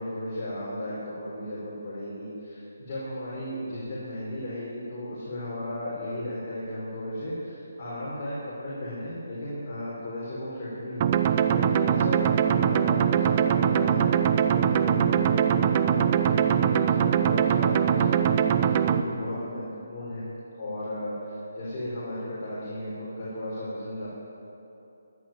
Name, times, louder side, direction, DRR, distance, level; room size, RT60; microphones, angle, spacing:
voice 1, 0.0-14.1 14.5-20.2 20.6-24.1, left 1 dB, 35° left, -9 dB, 4.4 m, -35 dB
sound 1, 11.0-19.0, right 8 dB, 30° right, 0.6 m, -22 dB
14.0 x 10.0 x 9.0 m, 2.9 s
hypercardioid pair, 165°, 0 cm